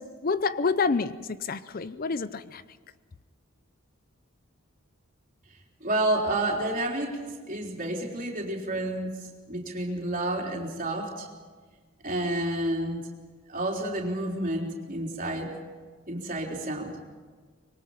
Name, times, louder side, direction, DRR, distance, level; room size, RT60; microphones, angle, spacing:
voice 1, 0.0-2.6, left 4 dB, 45° left, 0.5 m, -28 dB
voice 2, 5.8-11.3 12.0-13.0 13.5-15.6 16.1-17.0, right 1 dB, 40° right, 3.8 m, -30 dB
25.0 x 22.5 x 5.8 m
head